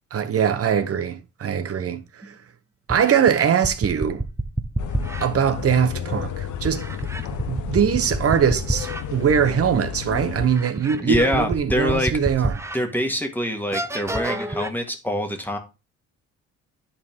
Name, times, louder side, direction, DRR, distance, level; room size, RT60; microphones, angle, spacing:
voice 1, 0.1-2.3 2.9-4.2 5.2-6.8 7.3-12.6, right 7 dB, 50° right, 1.1 m, -22 dB
sound 1, 2.2-2.3 2.9-5.3 6.6-9.0 9.5-9.6 10.4-12.8 13.2-13.3 13.7-14.7, right 2 dB, 10° right, 0.8 m, -28 dB
sound 2, 4.8-10.5, left 9 dB, 80° left, 1.0 m, -32 dB
voice 2, 11.0-12.1 12.7-15.6, equal, 5° left, 1.8 m, -24 dB
10.5 x 4.3 x 3.7 m
cardioid pair, 90°, 30 cm